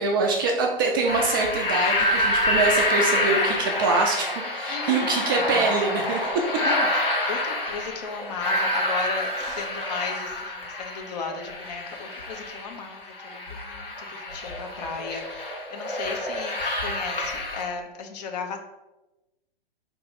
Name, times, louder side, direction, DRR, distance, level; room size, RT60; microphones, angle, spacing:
voice 1, 0.0-4.3 4.5-6.3, right 3 dB, 25° right, 1 dB, 0.3 m, -24 dB
sound 1, 1.1-17.6, left 1 dB, 70° left, 1.3 m, -27 dB
voice 2, 4.7-5.3 6.2-18.7, left 5 dB, 45° left, 4 dB, 0.6 m, -35 dB
4.0 x 2.9 x 3.7 m, 1.0 s
figure-of-eight pair, 110°, 29 cm